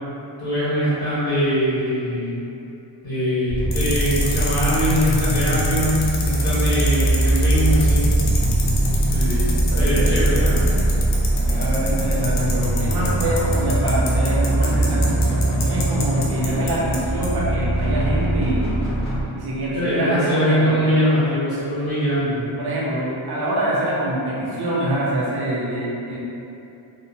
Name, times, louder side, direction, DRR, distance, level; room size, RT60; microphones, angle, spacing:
voice 1, 0.4-2.5 3.0-8.1 9.7-10.8 12.9-13.1 19.7-22.4, equal, 50° left, -13 dB, 1.3 m, -22 dB
sound 1, 3.5-19.2, right 1 dB, 15° left, 0.5 m, -21 dB
sound 2, 3.7-17.0 17.2-17.3, left 4 dB, 90° left, 0.6 m, -29 dB
voice 2, 9.1-10.1 11.4-18.7 19.3-20.8 22.6-26.2, right 1 dB, 55° right, -6 dB, 0.5 m, -25 dB
2.8 x 2.1 x 2.6 m, 2.8 s
wide cardioid pair, 170°, 47 cm